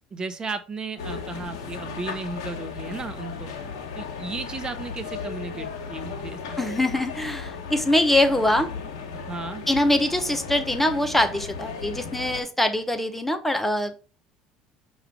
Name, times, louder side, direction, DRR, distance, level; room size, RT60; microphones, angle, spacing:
voice 1, 0.1-3.5 4.0-6.6 9.1-9.6, right 3 dB, 30° right, 9 dB, 0.9 m, -34 dB
sound 1, 1.0-12.4, left 5 dB, 80° left, 1.2 m, -36 dB
voice 2, 6.6-8.7 9.7-14.0, left 1 dB, 5° left, 8 dB, 0.9 m, -23 dB
6.3 x 3.2 x 4.9 m, 0.35 s
hypercardioid pair, 70°, 3 cm